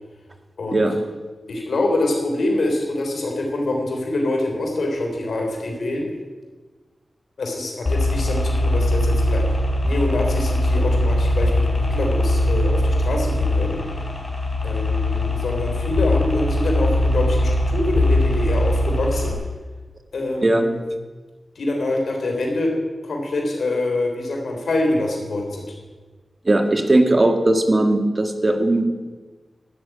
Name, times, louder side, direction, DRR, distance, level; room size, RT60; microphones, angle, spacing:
voice 1, 1.5-6.1 7.4-13.8 14.6-19.4 20.1-20.8 21.6-22.7 23.0-25.7, left 2 dB, 80° left, 1 dB, 3.5 m, -25 dB
sound 1, 7.9-19.3, left 1 dB, 40° left, 3.5 m, -21 dB
voice 2, 26.5-28.9, right 2 dB, 35° right, 6 dB, 1.7 m, -18 dB
12.5 x 6.9 x 9.6 m, 1.3 s
cardioid pair, 55°, 0 cm